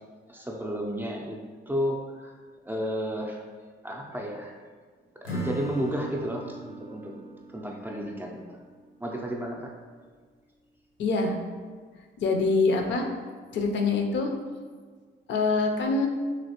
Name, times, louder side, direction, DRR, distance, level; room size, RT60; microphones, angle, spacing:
voice 1, 0.3-1.4 1.7-2.4 2.6-3.4 3.8-4.6 5.2-7.1 7.5-8.4 9.0-9.7, equal, 10° right, -1 dB, 0.4 m, -32 dB
Acoustic guitar / Strum, 5.2-9.2, right 2 dB, 90° left, 0.9 m, -39 dB
voice 2, 11.0-11.4 12.2-13.1 13.5-14.3 15.3-16.1, left 3 dB, 65° left, 3 dB, 0.5 m, -24 dB
3.0 x 2.8 x 2.9 m, 1.6 s
cardioid pair, 90°, 20 cm